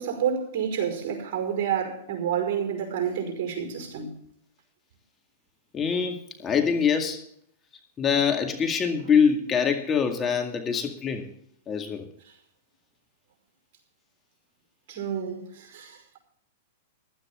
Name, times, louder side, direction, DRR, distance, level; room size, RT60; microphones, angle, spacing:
voice 1, 0.0-4.1 14.9-16.2, right 8 dB, 55° right, 5.2 m, -29 dB
voice 2, 5.7-7.2 8.0-11.3 11.7-12.1, left 6 dB, 25° left, 2.1 m, -24 dB
16.0 x 12.5 x 3.7 m
hypercardioid pair, 120°, 0 cm